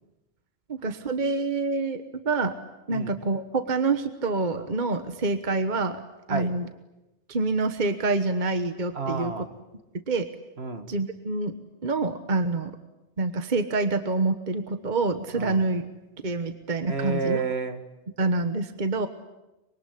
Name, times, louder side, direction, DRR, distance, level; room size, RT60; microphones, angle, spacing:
voice 1, 0.7-2.5 2.9-6.0 6.3-6.7 7.3-9.3 10.1-10.3 10.9-11.5 11.8-12.7 13.2-15.8 16.2-17.4 18.2-19.1, right 3 dB, 45° right, 9 dB, 1.4 m, -26 dB
voice 2, 8.9-9.5 10.6-10.9 15.3-15.7 16.8-17.8, right 4 dB, 65° right, 7 dB, 2.2 m, -30 dB
25.0 x 23.5 x 10.0 m, 0.99 s
omnidirectional pair, 1.2 m